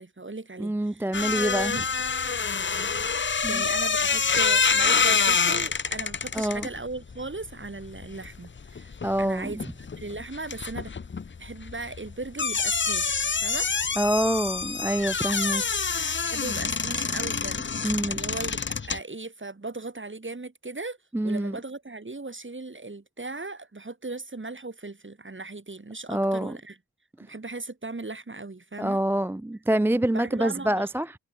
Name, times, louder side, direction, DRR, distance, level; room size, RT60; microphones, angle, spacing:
voice 1, 0.0-1.1 1.3-1.9 3.1-8.9 9.2-9.7 10.0-10.9 11.4-13.7 16.2-18.6 18.8-21.0 21.2-26.8 27.2-29.0 30.1-30.9, right 3 dB, 30° right, 6.8 m, -38 dB
voice 2, 0.6-1.7 3.4-3.6 6.3-6.7 9.0-9.5 14.0-15.6 17.8-18.2 21.1-21.6 26.1-26.5 28.8-31.2, right 1 dB, 5° right, 0.4 m, -26 dB
sound 1, 1.1-9.2 9.5-19.0, left 5 dB, 30° left, 0.7 m, -27 dB
wide cardioid pair, 75°, 37 cm